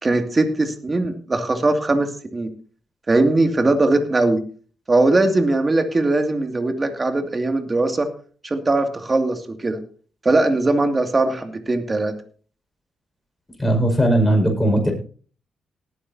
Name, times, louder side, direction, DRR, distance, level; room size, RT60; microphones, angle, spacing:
voice 1, 0.0-2.5 3.1-4.4 4.9-8.1 8.4-9.8 10.2-12.1, right 2 dB, 30° right, 6 dB, 2.4 m, -20 dB
voice 2, 13.6-14.9, right 1 dB, 10° left, 2 dB, 5.7 m, -18 dB
19.0 x 9.5 x 2.8 m, 0.41 s
supercardioid pair, 55°, 0 cm